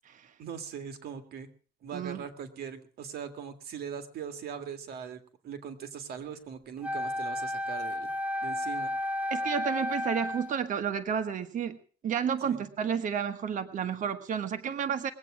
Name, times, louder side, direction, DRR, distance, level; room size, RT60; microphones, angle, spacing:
voice 1, 0.4-1.5 1.8-8.1 8.4-8.9 12.4-12.7, right 7 dB, 70° right, 8 dB, 2.0 m, -40 dB
voice 2, 1.9-2.2 9.3-11.8 12.0-15.1, right 7 dB, 50° right, 8 dB, 1.3 m, -31 dB
Wind instrument woodwind instrument, 6.8-10.6, left 1 dB, 10° right, 0.8 m, -32 dB
21.0 x 8.5 x 6.1 m, 0.42 s
cardioid pair, 110°, 17 cm